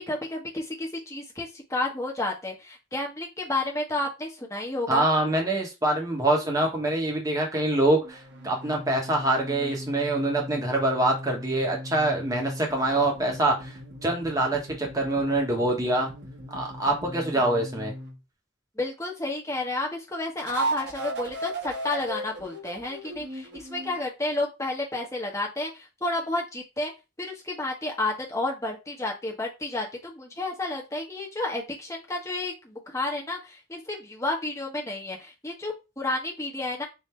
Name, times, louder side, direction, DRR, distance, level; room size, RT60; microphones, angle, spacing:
voice 1, 0.0-5.1 17.3-17.4 18.8-26.9 27.2-36.8, left 2 dB, 15° left, 0.9 m, -31 dB
voice 2, 4.9-16.1 16.5-17.9, right 2 dB, 15° right, 1.0 m, -25 dB
sound 1, 8.0-18.2 20.4-24.0, right 1 dB, 60° right, 1.3 m, -37 dB
3.5 x 2.7 x 4.3 m
head